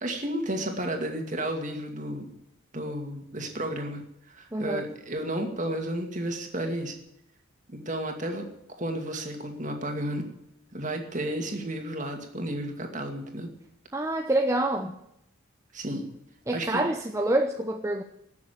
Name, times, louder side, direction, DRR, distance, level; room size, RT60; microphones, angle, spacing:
voice 1, 0.0-2.3 2.7-6.9 7.9-8.5 8.8-10.2 10.7-13.5 15.7-16.1 16.5-16.8, right 1 dB, 35° right, 4 dB, 2.3 m, -32 dB
voice 2, 4.5-4.8 13.9-15.0 16.5-18.0, right 1 dB, 15° right, 4 dB, 0.7 m, -26 dB
18.0 x 7.1 x 9.4 m, 0.79 s
head